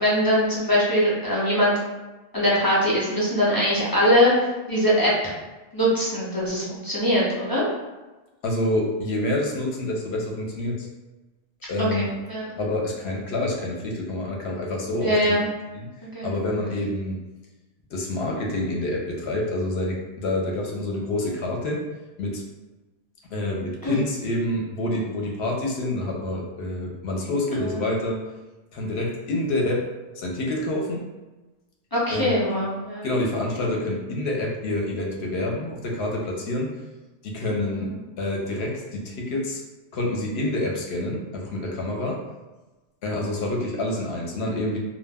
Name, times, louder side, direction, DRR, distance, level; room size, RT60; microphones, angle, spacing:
voice 1, 0.0-1.7 2.3-4.3 4.7-5.3 5.7-7.7 11.8-12.5 15.0-15.4 16.0-16.3 23.8-24.0 27.6-27.9 31.9-33.1 37.7-37.9, equal, 35° left, -7 dB, 0.3 m, -22 dB
voice 2, 8.4-10.9 11.7-12.1 12.6-15.3 15.7-15.9 16.2-17.2 17.9-21.8 22.2-22.4 23.3-28.2 28.7-29.9 30.2-31.0 32.1-32.3 33.0-36.7 37.2-37.9 38.2-39.6 39.9-42.2 43.0-44.8, left 1 dB, 70° left, -1 dB, 0.8 m, -27 dB
2.2 x 2.1 x 3.3 m, 1.1 s
omnidirectional pair, 1.2 m